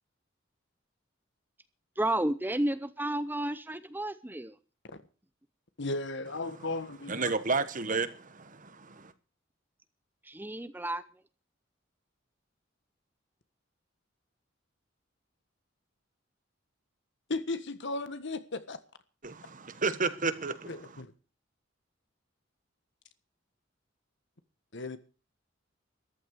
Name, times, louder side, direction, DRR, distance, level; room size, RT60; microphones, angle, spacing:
voice 1, 2.0-4.6 10.2-11.0, right 1 dB, 10° right, 0.7 m, -31 dB
voice 2, 5.8-7.3 17.3-18.8 20.7-21.1 24.7-25.0, left 2 dB, 65° left, 1.5 m, -35 dB
voice 3, 7.1-9.1 19.2-21.0, right 4 dB, 45° right, 1.4 m, -32 dB
14.0 x 12.5 x 6.6 m
head